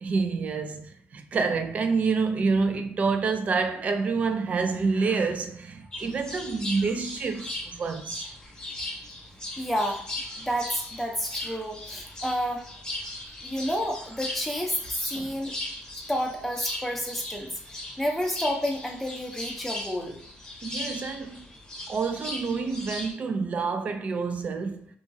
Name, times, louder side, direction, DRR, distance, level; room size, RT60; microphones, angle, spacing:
voice 1, 0.0-8.3 15.2-15.4 20.6-21.5 21.9-24.9, right 4 dB, 35° right, 0.4 m, -28 dB
sound 1, 5.9-23.1, left 1 dB, 20° left, 1.0 m, -38 dB
voice 2, 9.6-10.0 10.4-12.6 13.4-15.5 15.9-17.5 18.0-20.2, equal, 5° left, 0.6 m, -30 dB
2.8 x 2.3 x 2.6 m
cardioid pair, 140°, 4 cm